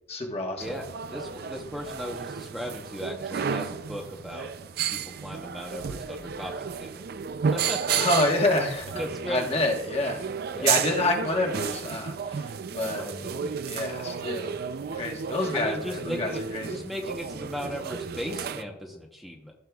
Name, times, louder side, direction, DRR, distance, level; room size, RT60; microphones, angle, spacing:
voice 1, 0.1-0.8 8.0-8.9 9.3-10.2 10.6-13.1 13.6-14.6 14.9-16.8, left 2 dB, 30° left, 1 dB, 1.3 m, -28 dB
voice 2, 0.6-4.5 4.9-6.5 6.8-7.0 7.5-8.0 8.9-9.6 10.5-10.7 13.0-14.2 15.5-16.4 16.7-19.5, equal, ahead, -1 dB, 0.8 m, -37 dB
sound 1, 0.6-18.6, right 7 dB, 50° right, 0.4 m, -32 dB
14.5 x 6.5 x 2.3 m, 0.85 s
head